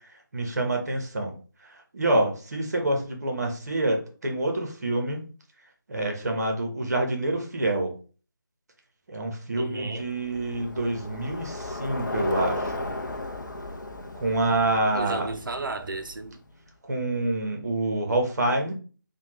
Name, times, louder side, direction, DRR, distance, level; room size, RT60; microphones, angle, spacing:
voice 1, 0.3-1.3 1.9-5.3 5.9-7.9 9.1-12.9 14.2-15.3 16.9-18.7, right 2 dB, 50° right, 0.9 m, -27 dB
voice 2, 9.6-10.1 14.9-16.4, right 3 dB, 70° right, 0.6 m, -33 dB
Bicycle, 10.0-16.5, left 2 dB, 60° left, 0.6 m, -35 dB
3.4 x 2.2 x 3.0 m
figure-of-eight pair, 160°, 11 cm